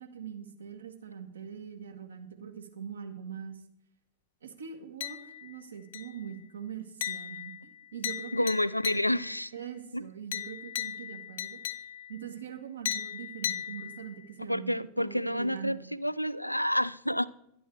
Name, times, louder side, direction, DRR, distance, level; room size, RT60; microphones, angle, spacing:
voice 1, 0.0-3.6 4.4-7.6 7.9-9.2 9.5-11.6 12.1-15.9, right 8 dB, 70° right, 5 dB, 1.7 m, -42 dB
sound 1, 5.0-5.6 5.9-6.4 7.0-9.4 10.3-12.2 12.9-14.3, left 11 dB, 60° left, 0.7 m, -37 dB
voice 2, 8.3-9.5 9.9-10.1 14.5-17.3, left 1 dB, 90° left, 18 dB, 0.4 m, -29 dB
11.5 x 10.0 x 4.7 m, 0.76 s
figure-of-eight pair, 90°, 0 cm